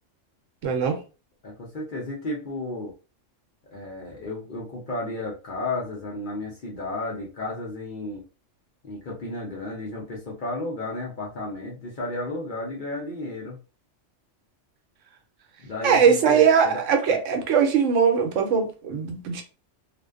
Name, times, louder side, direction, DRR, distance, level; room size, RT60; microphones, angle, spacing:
voice 1, 0.6-1.0 15.8-19.4, right 6 dB, 80° right, 1.0 m, -20 dB
voice 2, 1.4-2.9 3.7-8.2 8.8-13.6 15.6-16.8 17.1-17.2, left 2 dB, 50° left, 0.7 m, -33 dB
2.5 x 2.1 x 2.3 m
omnidirectional pair, 1.3 m